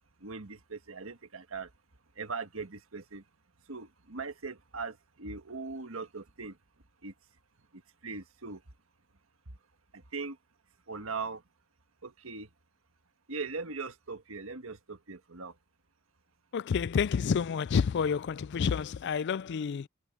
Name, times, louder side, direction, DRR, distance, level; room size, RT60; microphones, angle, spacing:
voice 1, 0.2-1.7 2.2-3.2 3.7-6.6 7.0-7.1 7.7-8.6 9.9-10.4 10.9-11.4 12.0-12.5 13.3-15.5, right 4 dB, 85° right, 1.6 m, -40 dB
voice 2, 16.5-19.9, left 6 dB, 55° left, 0.4 m, -29 dB
head